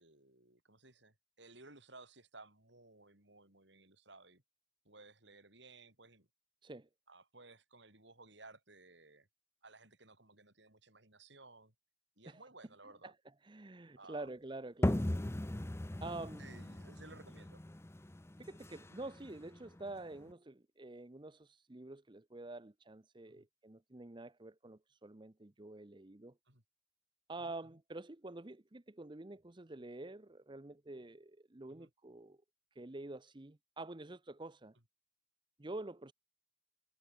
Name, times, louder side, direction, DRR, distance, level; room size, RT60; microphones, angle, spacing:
voice 1, 0.0-4.4 4.8-6.3 7.1-9.3 9.6-11.7 12.2-13.1 14.0-14.3 16.4-17.6 23.3-23.4 26.5-26.6 27.4-27.5 31.7-31.9, right 3 dB, 60° right, 6.9 m, -58 dB
voice 2, 13.4-15.1 16.0-16.4 18.4-26.3 27.3-32.4 32.7-34.8 35.6-36.1, right 2 dB, 25° right, 0.7 m, -48 dB
sound 1, 14.8-20.3, left 1 dB, 15° left, 0.6 m, -38 dB
head